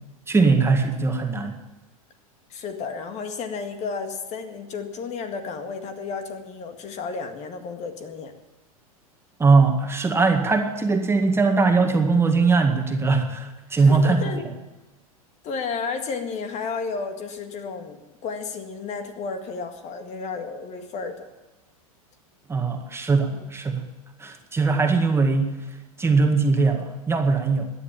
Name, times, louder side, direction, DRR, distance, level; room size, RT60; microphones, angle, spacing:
voice 1, 0.3-1.5 9.4-14.2 22.5-23.8 24.2-25.6 26.0-27.7, right 4 dB, 15° right, 4 dB, 1.9 m, -20 dB
voice 2, 2.5-8.3 13.8-14.4 15.4-21.3 23.3-23.4, left 5 dB, 35° left, 7 dB, 1.9 m, -32 dB
16.5 x 10.5 x 7.4 m, 1.1 s
hypercardioid pair, 100°, 19 cm